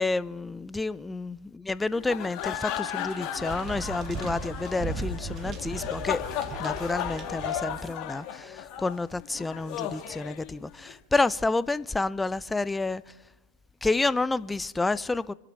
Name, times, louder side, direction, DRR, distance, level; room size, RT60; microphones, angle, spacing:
voice 1, 0.0-6.2 6.6-13.0 13.8-15.3, left 3 dB, 10° left, 0.5 m, -29 dB
sound 1, 1.9-10.9, left 10 dB, 45° left, 1.9 m, -35 dB
sound 2, 3.4-7.9, right 4 dB, 30° right, 2.0 m, -37 dB
26.5 x 11.5 x 4.6 m
hypercardioid pair, 95°, 0 cm